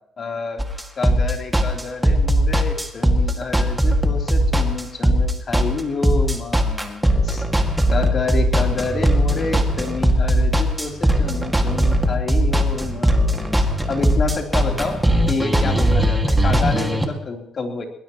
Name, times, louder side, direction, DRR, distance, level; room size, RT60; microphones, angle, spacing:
voice 1, 0.2-0.6 1.0-7.4 7.9-15.0 15.3-17.8, left 4 dB, 40° left, 2 dB, 3.6 m, -28 dB
sound 1, 0.6-17.1, equal, 5° right, 2.1 m, -19 dB
21.0 x 20.0 x 3.1 m, 0.80 s
cardioid pair, 115°, 0 cm